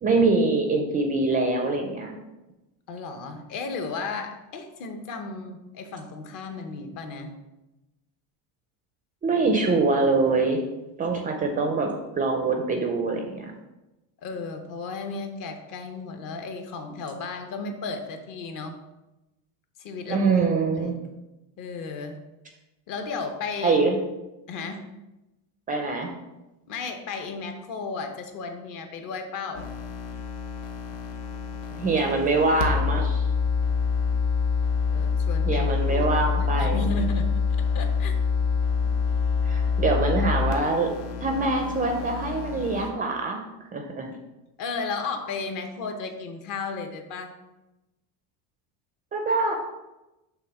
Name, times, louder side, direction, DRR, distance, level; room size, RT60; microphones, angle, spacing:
voice 1, 0.0-2.1 9.2-10.6 11.0-11.9 12.1-13.5 20.1-21.0 23.6-24.0 25.7-26.1 31.8-33.3 35.5-36.8 39.4-40.9 41.2-43.4 43.7-44.1 49.1-49.5, right 3 dB, 20° right, 3 dB, 0.4 m, -24 dB
voice 2, 2.9-7.4 14.2-18.8 19.8-20.3 20.7-21.0 21.6-22.2 22.9-23.8 24.5-24.9 26.7-29.7 32.7-32.8 34.9-37.3 37.7-38.1 44.6-47.3, left 4 dB, 45° left, 6 dB, 0.9 m, -34 dB
sound 1, 29.5-42.9, left 5 dB, 80° left, 1.1 m, -26 dB
6.1 x 3.5 x 5.8 m, 1.0 s
cardioid pair, 165°, 43 cm